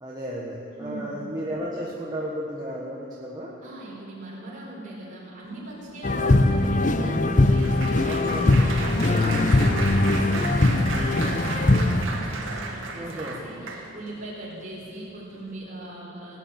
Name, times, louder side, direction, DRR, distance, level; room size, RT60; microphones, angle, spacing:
voice 1, 0.0-3.5 6.1-6.4 8.0-8.5 9.1-9.4 12.9-13.4, equal, 20° right, -5 dB, 1.4 m, -34 dB
voice 2, 0.7-1.3 3.6-8.2 8.7-16.4, right 2 dB, 40° right, -5 dB, 4.6 m, -40 dB
Applause, 5.9-14.2 14.8-15.1 15.3-15.5, right 3 dB, 75° right, 1.9 m, -35 dB
sound 1, 6.0-12.0, left 2 dB, 35° left, 0.6 m, -21 dB
18.0 x 10.0 x 7.5 m, 2.8 s
head